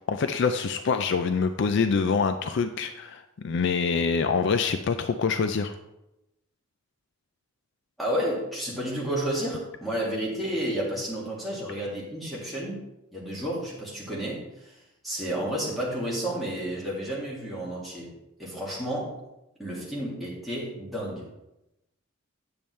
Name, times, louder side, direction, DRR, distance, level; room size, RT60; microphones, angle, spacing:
voice 1, 0.1-5.7, left 5 dB, 55° left, 8 dB, 0.4 m, -25 dB
voice 2, 8.0-12.8 13.1-14.7 15.0-18.1 18.4-19.2 19.6-21.3, right 1 dB, ahead, -7 dB, 2.1 m, -31 dB
8.7 x 7.0 x 3.2 m, 0.91 s
head